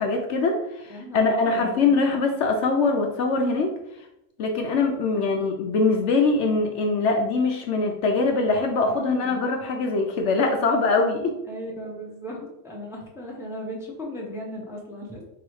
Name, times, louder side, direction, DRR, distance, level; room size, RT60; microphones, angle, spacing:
voice 1, 0.0-3.7 4.4-11.3, left 3 dB, 65° left, 3 dB, 0.8 m, -23 dB
voice 2, 0.9-1.9 5.1-5.4 8.4-9.4 11.5-15.2, equal, 5° right, -2 dB, 0.7 m, -37 dB
3.7 x 3.0 x 4.6 m, 0.85 s
omnidirectional pair, 1.4 m